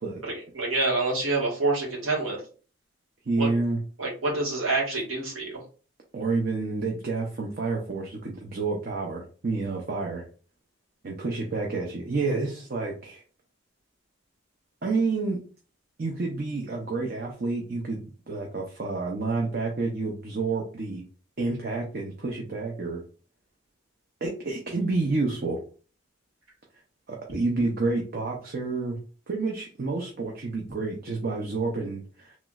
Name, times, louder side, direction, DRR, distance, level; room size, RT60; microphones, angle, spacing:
voice 1, 0.2-2.4 3.4-3.5 4.0-5.6, right 3 dB, 80° right, -3 dB, 1.5 m, -27 dB
voice 2, 3.3-3.8 6.1-10.3 11.0-13.2 14.8-15.4 16.0-21.0 21.4-23.0 24.2-25.6 27.1-29.0 29.3-32.4, right 3 dB, 45° right, 0 dB, 0.5 m, -29 dB
3.0 x 3.0 x 2.3 m, 0.39 s
head